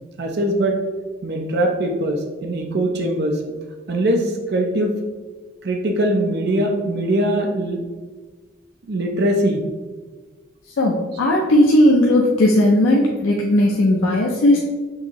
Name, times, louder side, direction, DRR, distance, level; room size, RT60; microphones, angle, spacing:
voice 1, 0.2-0.8 1.2-3.4 3.9-5.0 5.6-7.8 8.9-9.6, right 1 dB, 55° right, 2 dB, 0.5 m, -21 dB
voice 2, 10.8-14.6, left 1 dB, 90° left, -2 dB, 0.5 m, -16 dB
6.2 x 2.7 x 2.9 m, 1.3 s
head